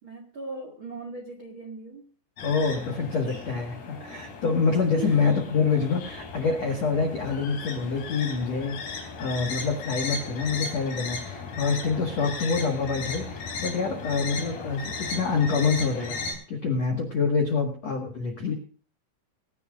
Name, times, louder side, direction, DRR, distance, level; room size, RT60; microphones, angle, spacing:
voice 1, 0.0-2.1 2.5-2.6 2.9-3.3 5.0-5.2, right 4 dB, 65° right, 3 dB, 1.3 m, -39 dB
sound 1, 2.4-16.3, left 4 dB, 85° left, 6.7 m, -36 dB
voice 2, 2.4-18.5, left 5 dB, 65° left, 2 dB, 1.6 m, -26 dB
24.0 x 11.0 x 2.5 m, 0.40 s
omnidirectional pair, 5.9 m